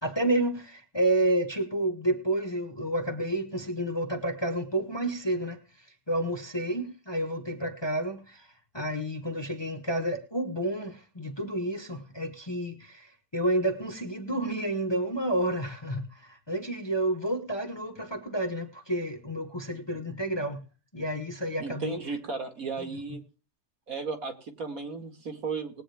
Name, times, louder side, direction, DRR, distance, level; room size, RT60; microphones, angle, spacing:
voice 1, 0.0-5.6 6.1-8.5 8.7-20.6 20.9-22.0, right 1 dB, 15° left, 1.4 m, -30 dB
voice 2, 21.6-23.2 23.9-25.8, right 4 dB, 60° right, 2.5 m, -35 dB
20.0 x 9.0 x 3.5 m
omnidirectional pair, 1.7 m